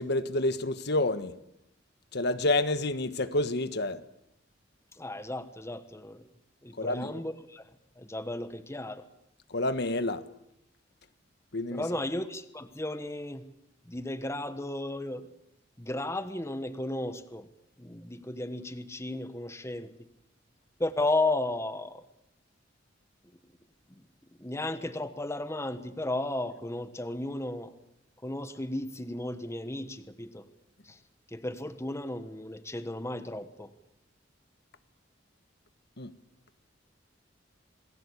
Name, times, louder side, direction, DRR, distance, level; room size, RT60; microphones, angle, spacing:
voice 1, 0.0-1.3 2.1-4.0 6.8-7.2 9.5-10.2 11.5-11.8 36.0-36.1, left 2 dB, 60° left, 1.4 m, -28 dB
voice 2, 4.9-6.3 6.6-7.7 8.0-9.0 11.7-13.4 13.8-15.3 15.8-17.5 17.8-20.1 20.8-22.0 23.9-24.0 24.4-27.7 28.2-30.5 30.8-31.0 31.3-33.7, left 2 dB, 15° left, 1.4 m, -34 dB
28.0 x 19.5 x 8.5 m
head